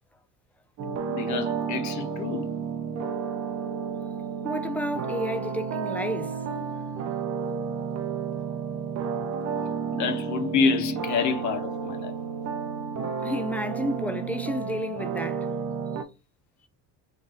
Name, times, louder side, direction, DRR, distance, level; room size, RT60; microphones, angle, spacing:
sound 1, 0.8-16.0, right 6 dB, 50° right, 0.6 m, -31 dB
voice 1, 1.1-2.5 9.9-12.2, left 5 dB, 55° left, 0.9 m, -27 dB
voice 2, 4.4-6.8 13.2-15.6, equal, 5° left, 0.3 m, -31 dB
3.3 x 2.6 x 3.7 m
cardioid pair, 130°, 36 cm